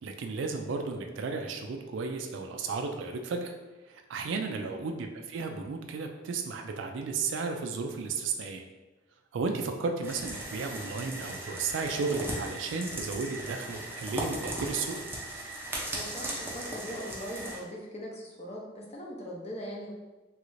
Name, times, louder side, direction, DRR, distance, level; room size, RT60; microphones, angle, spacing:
voice 1, 0.0-3.5 3.9-8.6 9.3-15.0, right 4 dB, 75° right, 4 dB, 0.3 m, -34 dB
voice 2, 4.3-4.7 15.9-19.9, equal, 35° left, -2 dB, 0.6 m, -41 dB
sound 1, 10.0-17.6, right 1 dB, 10° right, 0.5 m, -37 dB
3.1 x 2.5 x 3.1 m, 1.1 s
head